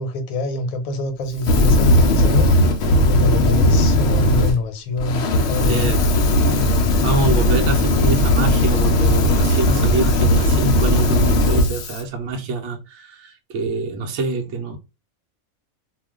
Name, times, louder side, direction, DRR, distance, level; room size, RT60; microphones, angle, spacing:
voice 1, 0.0-2.5 3.1-5.9, left 2 dB, 85° left, 1.1 m, -25 dB
Fire, 1.4-4.5 5.0-12.0, left 1 dB, 65° left, 0.7 m, -17 dB
voice 2, 5.6-6.1 7.0-14.8, right 3 dB, 65° right, 0.8 m, -25 dB
2.4 x 2.2 x 3.4 m
omnidirectional pair, 1.5 m